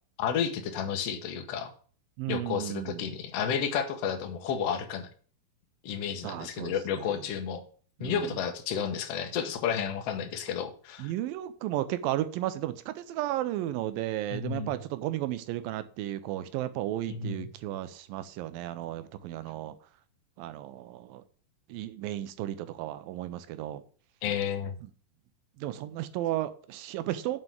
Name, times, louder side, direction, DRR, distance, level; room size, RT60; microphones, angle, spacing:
voice 1, 0.2-1.7 2.3-5.1 5.8-7.6 8.0-11.1 14.3-14.7 17.1-17.5 24.2-24.8, left 7 dB, 80° left, 5 dB, 1.4 m, -31 dB
voice 2, 2.2-3.0 6.2-7.2 8.0-8.4 11.0-19.8 20.4-21.2 21.7-23.8 25.6-27.4, right 13 dB, 85° right, 13 dB, 2.3 m, -34 dB
7.7 x 4.7 x 7.2 m, 0.43 s
omnidirectional pair, 4.2 m